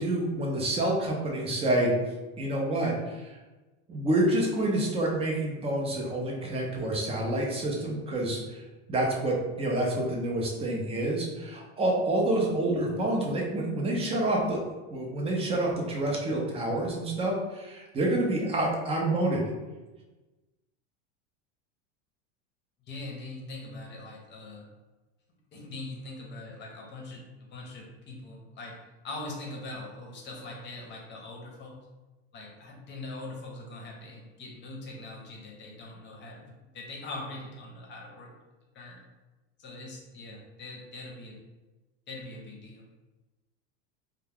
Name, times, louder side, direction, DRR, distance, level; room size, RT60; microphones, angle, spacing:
voice 1, 0.0-1.9 2.4-3.4 3.9-8.6 8.9-19.4, right 1 dB, 15° right, -1 dB, 0.5 m, -28 dB
voice 2, 22.9-24.7 25.5-28.8 29.0-31.8 32.3-36.4 36.7-38.3 38.7-39.0 39.6-41.4 42.1-42.8, left 2 dB, 30° left, -1 dB, 0.7 m, -42 dB
2.2 x 2.2 x 3.3 m, 1.2 s
supercardioid pair, 120°, 34 cm